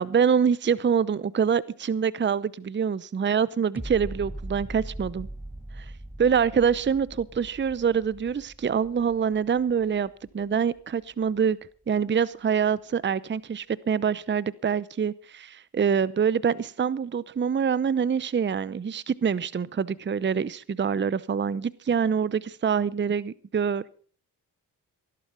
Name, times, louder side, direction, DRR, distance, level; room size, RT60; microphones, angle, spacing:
voice 1, 0.0-5.3 5.8-5.9 6.2-11.6 11.9-24.0, right 7 dB, 30° right, 21 dB, 0.7 m, -25 dB
sound 1, 3.8-10.8 11.3-11.4, right 1 dB, 5° right, 1.3 m, -41 dB
16.5 x 11.5 x 5.5 m, 0.43 s
supercardioid pair, 45°, 41 cm